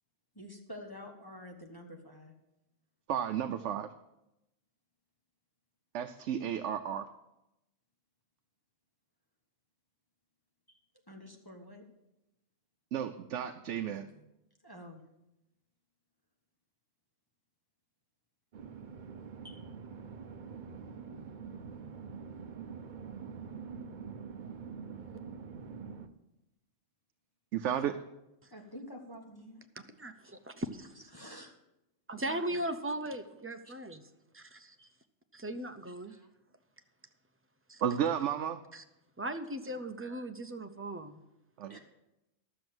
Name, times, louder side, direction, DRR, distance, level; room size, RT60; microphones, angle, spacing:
voice 1, 0.3-2.3 10.7-10.8 11.1-11.8 14.0-14.2 14.6-15.0 19.4-19.6 21.6-22.0 28.5-29.6 30.2-30.3 31.1-31.5 33.6-33.7 34.8-34.9 36.1-36.3 41.7-41.8, equal, 20° left, 1 dB, 1.2 m, -49 dB
voice 2, 3.1-3.9 5.9-7.1 12.9-14.1 27.5-28.0 37.8-38.6 41.6-41.8, right 9 dB, 75° right, 8 dB, 0.9 m, -33 dB
sound 1, 18.5-26.1, right 6 dB, 45° right, 0.7 m, -45 dB
voice 3, 30.0-30.9 32.1-34.0 34.3-34.8 35.3-36.2 37.7-37.8 38.7-38.8 39.2-41.2, right 1 dB, 15° right, 7 dB, 0.4 m, -38 dB
12.5 x 6.8 x 7.8 m, 0.91 s
omnidirectional pair, 1.3 m